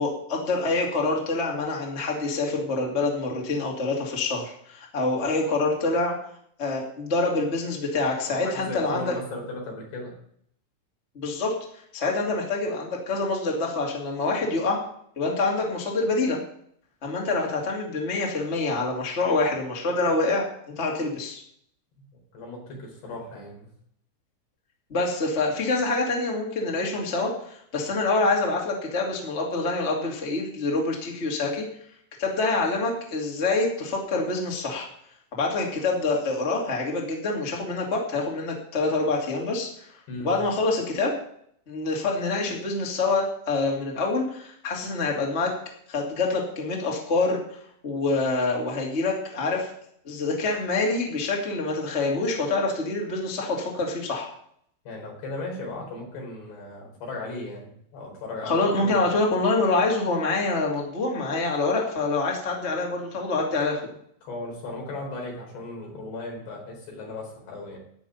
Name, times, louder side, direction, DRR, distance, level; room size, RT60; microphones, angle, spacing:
voice 1, 0.0-6.1 6.6-9.1 11.1-11.5 11.9-14.8 15.1-16.4 17.0-20.5 20.8-21.4 24.9-31.6 32.2-34.9 35.3-39.7 40.2-41.1 41.7-45.5 45.9-47.4 47.8-49.7 50.0-54.3 58.4-63.8, left 3 dB, 80° left, -1 dB, 0.6 m, -26 dB
voice 2, 8.4-10.2 22.3-23.7 40.1-40.3 54.9-58.9 64.2-67.8, left 2 dB, 55° left, -1 dB, 6.0 m, -36 dB
13.0 x 5.7 x 9.5 m, 0.67 s
omnidirectional pair, 6.0 m